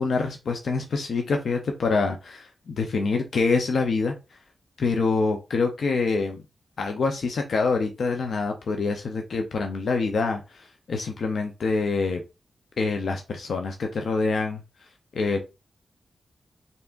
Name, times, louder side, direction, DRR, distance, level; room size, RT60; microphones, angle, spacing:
voice 1, 0.0-4.2 4.8-6.4 6.8-12.2 12.8-14.6 15.1-15.4, left 4 dB, 75° left, 4 dB, 0.6 m, -26 dB
4.0 x 3.5 x 2.5 m, 0.27 s
cardioid pair, 45°, 0 cm